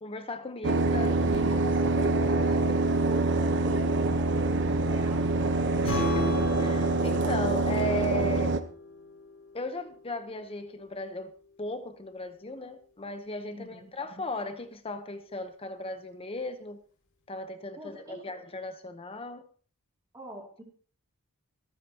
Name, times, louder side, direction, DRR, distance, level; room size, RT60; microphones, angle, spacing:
voice 1, 0.0-2.8 5.8-8.6 9.5-11.3 11.6-16.8 17.3-19.4, left 2 dB, 25° left, 0.9 m, -37 dB
sound 1, 0.6-8.6, right 2 dB, 55° right, 1.0 m, -25 dB
voice 2, 1.3-1.8 3.0-6.0 13.5-13.9 17.8-18.2 20.1-20.6, right 1 dB, 15° right, 2.6 m, -43 dB
Strum, 5.8-10.0, equal, 60° left, 6.4 m, -36 dB
26.0 x 9.3 x 2.9 m
head